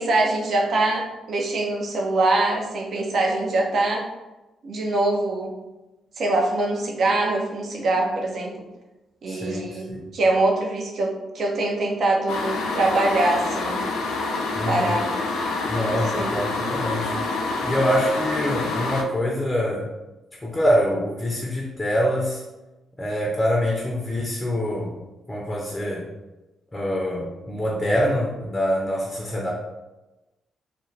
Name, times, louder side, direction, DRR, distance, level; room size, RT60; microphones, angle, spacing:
voice 1, 0.0-4.1 4.6-5.5 6.2-8.5 9.2-13.8 14.7-15.1 15.9-16.3, right 2 dB, 55° right, 0 dB, 0.6 m, -23 dB
voice 2, 9.3-10.1 14.5-14.9 15.6-17.1 17.6-19.9 20.4-22.4 23.0-24.9 25.3-26.1 26.7-29.5, equal, 25° left, -1 dB, 0.6 m, -25 dB
sound 1, 12.3-19.0, left 3 dB, 70° left, 0.4 m, -27 dB
2.5 x 2.3 x 3.1 m, 1.0 s
hypercardioid pair, 40°, 0 cm